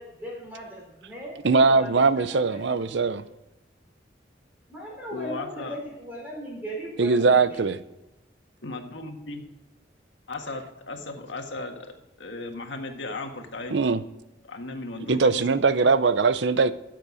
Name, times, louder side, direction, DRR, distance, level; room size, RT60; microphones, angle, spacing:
voice 1, 0.0-3.1 4.7-7.7, equal, 10° right, -3 dB, 4.2 m, -39 dB
voice 2, 1.4-3.2 7.0-7.8 13.7-14.0 15.1-16.7, right 4 dB, 75° right, 14 dB, 0.6 m, -21 dB
voice 3, 5.1-5.8 8.6-9.4 10.3-13.9 14.4-15.6, left 2 dB, 90° left, 4 dB, 1.7 m, -36 dB
14.0 x 7.8 x 5.0 m, 0.95 s
head